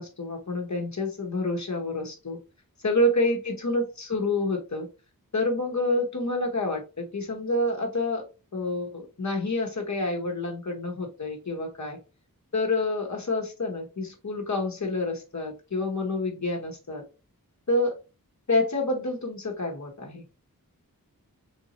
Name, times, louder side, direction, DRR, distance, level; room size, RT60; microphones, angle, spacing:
voice 1, 0.0-2.4 2.8-4.9 5.3-8.2 8.5-12.0 12.5-17.0 17.7-17.9 18.5-20.4, left 2 dB, 50° left, 1 dB, 1.1 m, -28 dB
3.7 x 2.6 x 2.9 m, 0.30 s
wide cardioid pair, 65°, 35 cm